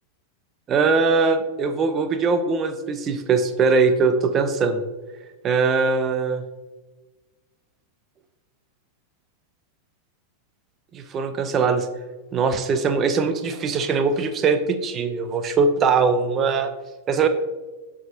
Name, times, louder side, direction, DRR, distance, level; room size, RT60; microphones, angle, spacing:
voice 1, 0.7-4.8 5.4-6.4 10.9-11.9 12.3-16.7 17.1-17.3, right 4 dB, 30° right, 9 dB, 0.7 m, -21 dB
15.0 x 5.1 x 2.6 m, 1.2 s
figure-of-eight pair, 90°, 0 cm